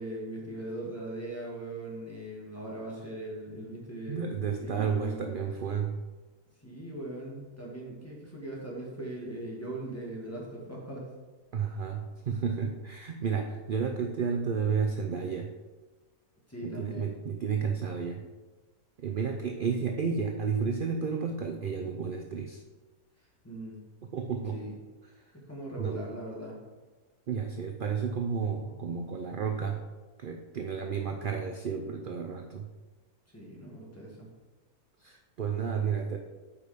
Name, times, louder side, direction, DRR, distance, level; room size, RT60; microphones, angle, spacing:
voice 1, 0.0-5.4 6.6-11.1 16.5-17.1 23.4-23.8 24.5-24.8 25.3-26.6 33.3-34.3, right 1 dB, 10° left, -4 dB, 1.9 m, -40 dB
voice 2, 4.1-6.0 11.5-15.5 16.6-18.2 19.0-22.6 24.0-24.6 25.8-26.1 27.3-29.8 30.2-32.7 35.0-36.2, right 6 dB, 60° right, 4 dB, 0.5 m, -32 dB
8.2 x 5.2 x 5.0 m, 1.2 s
omnidirectional pair, 1.6 m